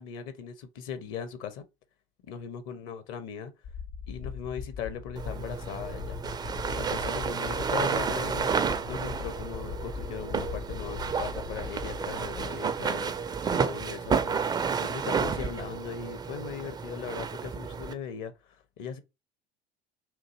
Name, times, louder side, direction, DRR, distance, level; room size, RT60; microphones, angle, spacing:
voice 1, 0.0-1.6 2.3-3.5 4.1-6.2 6.8-13.1 13.5-19.0, left 7 dB, 45° left, 0.7 m, -39 dB
sound 1, 3.6-12.5, left 6 dB, 60° left, 1.4 m, -40 dB
sound 2, 5.2-17.9, right 6 dB, 15° right, 0.4 m, -31 dB
3.7 x 2.6 x 4.1 m
figure-of-eight pair, 70°, 30 cm